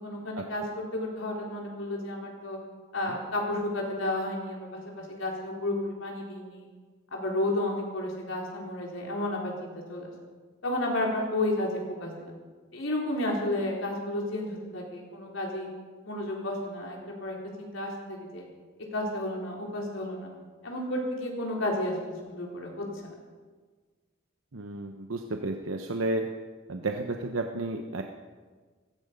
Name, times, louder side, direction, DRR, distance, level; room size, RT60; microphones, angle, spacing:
voice 1, 0.0-2.6 2.9-6.7 7.1-10.1 10.6-12.3 12.7-15.7 16.0-18.4 18.9-20.3 20.6-23.1, left 1 dB, 80° left, -1 dB, 4.0 m, -32 dB
voice 2, 24.5-26.3 26.7-28.0, right 2 dB, 85° right, 4 dB, 0.9 m, -32 dB
16.5 x 15.0 x 5.3 m, 1.5 s
head